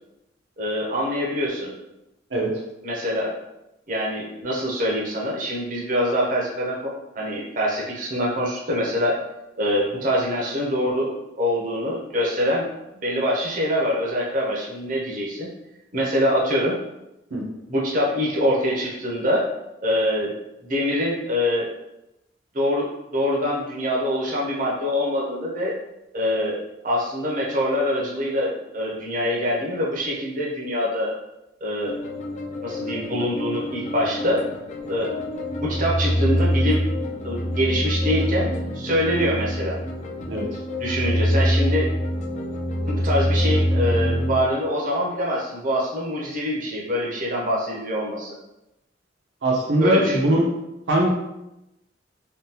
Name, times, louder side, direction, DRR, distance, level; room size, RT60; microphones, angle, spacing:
voice 1, 0.6-1.7 2.8-3.4 3.9-9.2 9.6-12.7 13.0-15.5 15.9-16.8 17.7-19.5 19.8-20.3 20.6-21.7 22.5-25.7 26.1-31.1 31.6-31.9 32.6-34.4 34.9-35.1 35.6-36.9 37.2-39.8 40.8-41.9 42.9-48.4 49.8-50.2, equal, 45° right, -4 dB, 0.7 m, -24 dB
sound 1, 31.9-44.4, equal, 40° left, 0.4 m, -25 dB
voice 2, 49.4-50.5 50.9-51.1, right 1 dB, 75° right, -1 dB, 0.8 m, -20 dB
3.6 x 2.3 x 2.8 m, 0.92 s
head